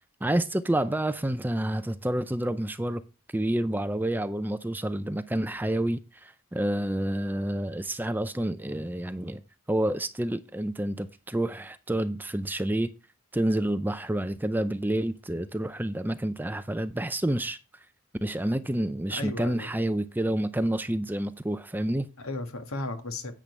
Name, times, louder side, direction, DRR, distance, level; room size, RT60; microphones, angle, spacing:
voice 1, 0.2-3.0 3.3-9.4 9.7-12.9 13.3-17.6 18.2-22.1, right 1 dB, 10° right, 0.5 m, -29 dB
voice 2, 19.1-19.7 22.2-23.4, left 2 dB, 75° left, 1.9 m, -35 dB
10.0 x 8.8 x 3.3 m
head